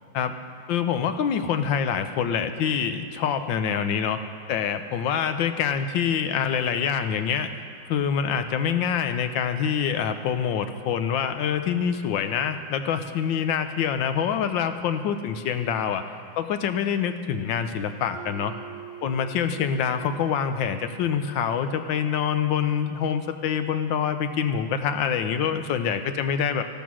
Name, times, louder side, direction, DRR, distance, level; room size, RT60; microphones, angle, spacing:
voice 1, 0.7-7.5 7.9-16.0 16.4-18.5 19.0-26.6, left 7 dB, 75° left, 9 dB, 1.4 m, -26 dB
Mallet percussion, 18.1-22.2, right 8 dB, 55° right, 2.2 m, -44 dB
13.5 x 12.5 x 6.2 m, 2.2 s
omnidirectional pair, 2.1 m